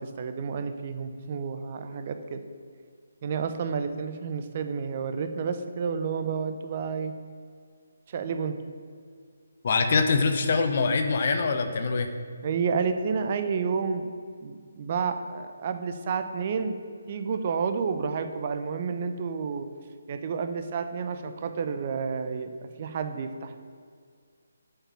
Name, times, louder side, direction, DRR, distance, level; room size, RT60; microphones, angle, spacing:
voice 1, 0.0-2.4 3.2-7.1 8.1-8.6 12.4-14.1 14.4-16.8 17.1-19.7 20.1-22.5 22.8-23.6, right 5 dB, 35° right, 8 dB, 0.7 m, -30 dB
voice 2, 9.6-12.1, left 4 dB, 40° left, 6 dB, 1.1 m, -24 dB
8.7 x 7.2 x 7.2 m, 2.1 s
figure-of-eight pair, 145°, 0 cm